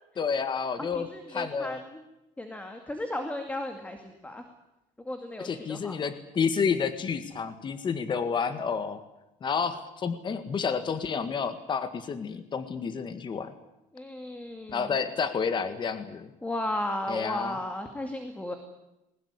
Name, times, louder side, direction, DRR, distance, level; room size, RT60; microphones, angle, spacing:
voice 1, 0.2-1.8 5.4-9.0 9.4-13.5 14.7-16.3 17.1-17.6, left 6 dB, 30° left, 10 dB, 1.8 m, -30 dB
voice 2, 0.8-2.0 2.4-4.4 5.1-6.0 13.9-14.9 16.4-18.6, left 1 dB, 10° left, 6 dB, 2.3 m, -35 dB
21.0 x 19.5 x 9.8 m, 0.91 s
cardioid pair, 155°, 15 cm